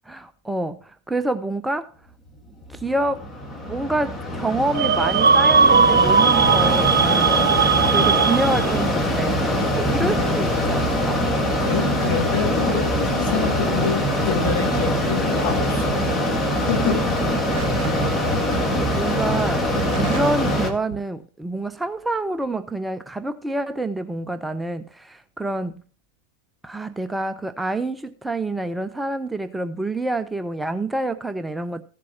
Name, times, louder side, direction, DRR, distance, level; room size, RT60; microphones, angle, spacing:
voice 1, 0.1-1.9 2.7-3.3 3.6-7.5 7.9-11.2 17.6-18.1 18.9-19.7 20.0-25.8 26.6-31.8, right 2 dB, 5° right, 0.5 m, -27 dB
Mechanisms, 2.7-20.7, equal, 10° left, 1.7 m, -23 dB
sound 1, 4.7-8.9, right 6 dB, 70° right, 0.6 m, -18 dB
voice 2, 10.0-10.8 11.6-17.0 19.1-19.2 20.1-20.2, left 7 dB, 55° left, 5.1 m, -27 dB
sound 2, 17.5-18.1 18.5-18.6 19.5-20.4 20.7-21.0, right 9 dB, 45° right, 1.5 m, -33 dB
15.0 x 7.5 x 2.9 m
figure-of-eight pair, 90°, 0 cm